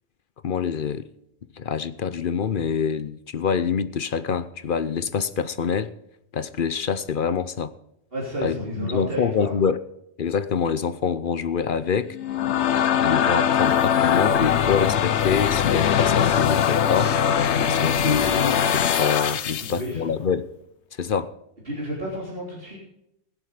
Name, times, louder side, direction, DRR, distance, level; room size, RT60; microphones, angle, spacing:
voice 1, 0.4-1.1 1.6-5.9 6.3-7.7 8.4-9.8 10.2-12.2 13.0-17.2 17.5-20.5 21.0-21.3, left 6 dB, 55° left, 14 dB, 0.8 m, -25 dB
voice 2, 8.1-9.5 19.6-20.1 21.7-22.8, equal, 55° right, -4 dB, 3.7 m, -31 dB
sound 1, 12.1-19.8, left 8 dB, 85° left, 1.0 m, -21 dB
21.0 x 7.4 x 5.0 m, 0.81 s
omnidirectional pair, 1.1 m